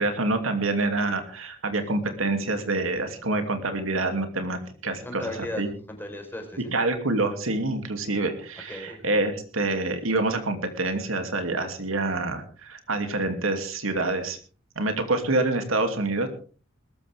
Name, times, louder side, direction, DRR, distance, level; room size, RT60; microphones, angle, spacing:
voice 1, 0.0-5.7 6.7-14.4 14.8-16.3, right 2 dB, 90° right, 6 dB, 2.8 m, -27 dB
voice 2, 5.0-6.7 8.7-9.0, left 1 dB, 10° left, 4 dB, 4.5 m, -36 dB
20.5 x 14.0 x 3.6 m, 0.39 s
head